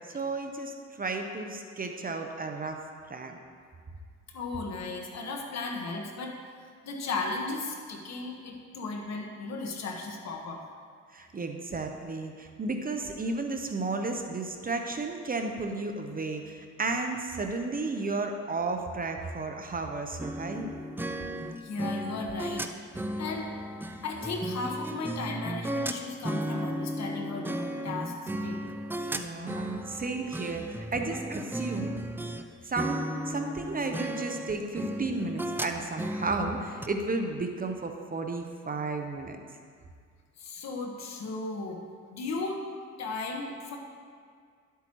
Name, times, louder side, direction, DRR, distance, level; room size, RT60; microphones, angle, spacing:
voice 1, 0.1-2.8 3.1-3.4 11.1-20.7 29.1-31.9 32.2-32.3 32.6-39.4, right 3 dB, 30° right, 4 dB, 0.8 m, -33 dB
voice 2, 4.3-6.3 6.8-10.6 21.6-22.6 23.2-23.5 23.9-28.6 29.0-29.1 40.4-41.8 42.1-42.6 43.0-43.8, left 3 dB, 60° left, 1 dB, 1.4 m, -35 dB
sound 1, 20.2-32.4 32.8-36.9, right 1 dB, 5° right, 0.4 m, -35 dB
11.5 x 8.2 x 3.1 m, 2.1 s
cardioid pair, 90°, 30 cm